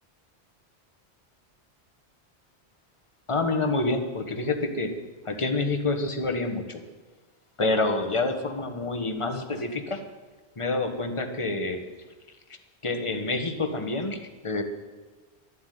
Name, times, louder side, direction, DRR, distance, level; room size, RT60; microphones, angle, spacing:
voice 1, 3.3-4.9 5.2-6.8 7.6-10.0 10.6-11.8 12.8-14.6, left 2 dB, 30° left, 6 dB, 1.4 m, -27 dB
12.0 x 11.5 x 9.4 m, 1.3 s
omnidirectional pair, 1.1 m